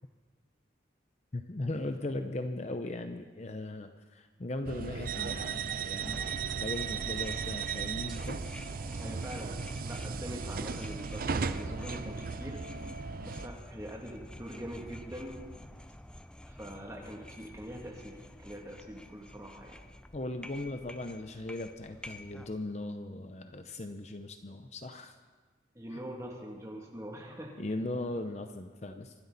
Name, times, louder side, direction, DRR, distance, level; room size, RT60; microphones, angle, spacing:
voice 1, 1.3-8.4 20.1-25.2 25.9-26.0 27.6-29.1, left 2 dB, 35° left, 7 dB, 0.7 m, -38 dB
sound 1, 4.6-13.5, right 5 dB, 50° right, 0.5 m, -36 dB
sound 2, 6.0-22.5, left 1 dB, 5° left, 0.4 m, -49 dB
voice 2, 8.9-12.6 13.2-15.4 16.5-19.8 25.7-27.6, equal, 15° right, -1 dB, 2.4 m, -43 dB
25.5 x 12.5 x 4.1 m, 1.4 s
head